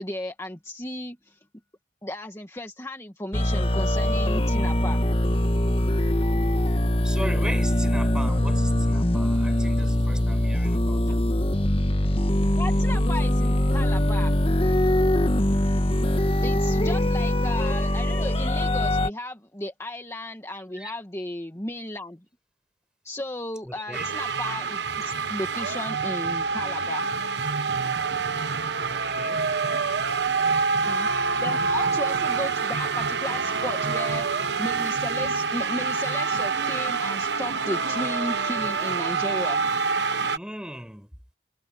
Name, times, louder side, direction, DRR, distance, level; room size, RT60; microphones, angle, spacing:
voice 1, 0.0-1.4 2.0-5.0 12.6-14.3 16.4-22.2 23.0-25.0 25.3-27.1 30.9-31.1 31.4-39.7, left 1 dB, 15° left, 1.8 m, -34 dB
sound 1, 3.3-19.1, left 1 dB, 30° left, 1.4 m, -22 dB
voice 2, 7.0-11.3 20.7-20.9 23.6-24.1 28.7-29.5 30.0-30.6 31.5-31.6 40.3-41.1, right 1 dB, 5° right, 6.9 m, -38 dB
sound 2, 23.9-40.4, right 5 dB, 70° right, 1.1 m, -26 dB
head